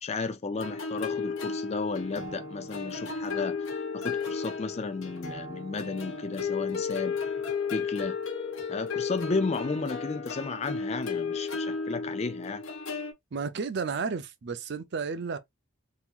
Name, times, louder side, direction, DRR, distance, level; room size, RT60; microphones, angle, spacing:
voice 1, 0.0-3.7 3.9-7.2 7.7-8.2 8.7-12.6, left 4 dB, 30° left, 0.3 m, -33 dB
sound 1, 0.6-13.1, left 5 dB, 65° left, 1.0 m, -34 dB
voice 2, 13.3-15.4, right 5 dB, 50° right, 0.5 m, -32 dB
3.7 x 2.9 x 2.4 m
head